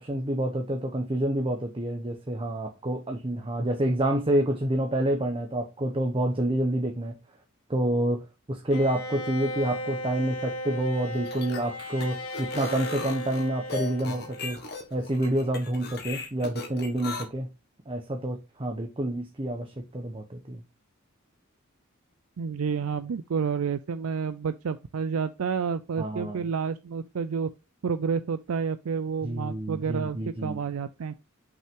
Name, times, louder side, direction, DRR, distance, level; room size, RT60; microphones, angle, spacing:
voice 1, 0.0-7.2 7.7-14.6 14.9-17.5 17.9-20.6 26.0-26.5 29.2-30.6, right 1 dB, 25° right, 0.9 m, -28 dB
Bowed string instrument, 8.7-14.8, equal, 85° left, 1.4 m, -36 dB
sound 1, 11.1-17.2, left 4 dB, 50° left, 1.6 m, -38 dB
voice 2, 22.4-27.5 27.8-31.1, right 6 dB, 80° right, 0.5 m, -30 dB
6.0 x 5.6 x 3.6 m
head